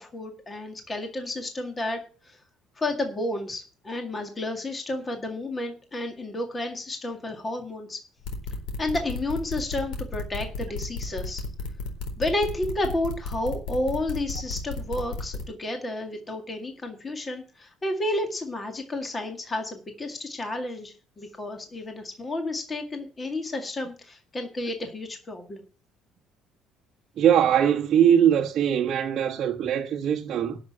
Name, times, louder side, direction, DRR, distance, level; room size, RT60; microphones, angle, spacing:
voice 1, 0.0-2.4 2.8-8.0 8.8-11.4 12.2-25.6, left 1 dB, 15° left, 2.0 m, -31 dB
sound 1, 8.2-15.4, left 4 dB, 75° left, 4.3 m, -33 dB
voice 2, 27.2-30.6, right 9 dB, 40° right, 1.3 m, -21 dB
12.0 x 6.3 x 8.6 m
cardioid pair, 175°, 0 cm